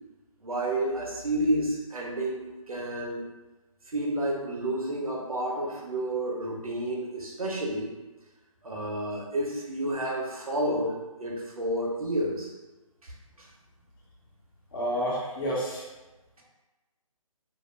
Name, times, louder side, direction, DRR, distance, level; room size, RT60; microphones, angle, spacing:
voice 1, 0.4-3.2 3.9-7.9 8.6-12.5 13.0-13.1, right 1 dB, 80° right, -2 dB, 0.8 m, -30 dB
voice 2, 14.7-15.8, equal, 35° left, -5 dB, 0.9 m, -29 dB
2.6 x 2.1 x 3.1 m, 1.1 s
figure-of-eight pair, 155°, 18 cm